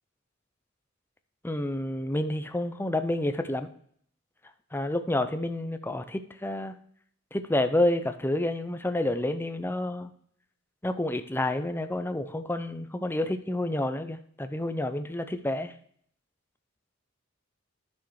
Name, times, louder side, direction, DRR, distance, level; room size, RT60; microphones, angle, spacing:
voice 1, 1.4-3.7 4.7-6.8 7.3-10.1 10.8-15.7, left 1 dB, 10° left, 9 dB, 0.6 m, -29 dB
11.0 x 6.4 x 4.7 m, 0.62 s
head